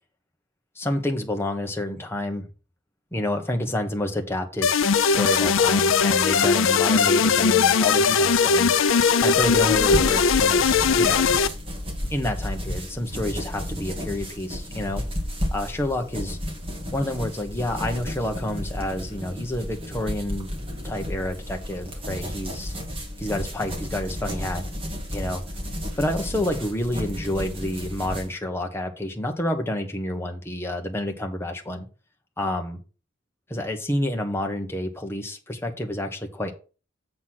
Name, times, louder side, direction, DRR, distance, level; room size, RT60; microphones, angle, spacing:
voice 1, 0.7-2.5 3.1-4.7 5.1-8.8 9.2-11.2 12.1-15.0 15.5-16.4 16.9-20.5 20.8-22.7 23.2-24.6 25.1-25.4 26.0-31.9 32.4-32.8 33.5-36.5, left 1 dB, 10° left, 3 dB, 1.1 m, -29 dB
sound 1, 4.6-11.5, left 6 dB, 75° left, 0.5 m, -19 dB
sound 2, 9.3-28.3, equal, 30° right, 2.0 m, -32 dB
7.7 x 4.0 x 5.9 m, 0.35 s
head